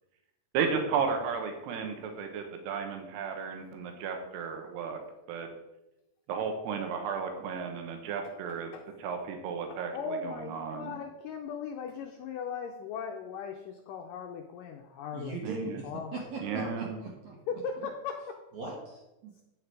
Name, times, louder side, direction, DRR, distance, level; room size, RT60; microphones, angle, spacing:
voice 1, 0.5-5.0 5.3-5.5 6.3-8.7 9.0-10.9 15.4-15.8 16.4-17.0, right 6 dB, 90° right, 5 dB, 3.2 m, -34 dB
voice 2, 8.5-8.9 9.7-16.7 17.5-18.4, left 6 dB, 80° left, 3 dB, 1.9 m, -39 dB
voice 3, 15.1-17.4 17.8-17.9 18.5-19.3, right 3 dB, 60° right, -1 dB, 2.2 m, -39 dB
9.6 x 8.5 x 4.7 m, 0.96 s
omnidirectional pair, 4.6 m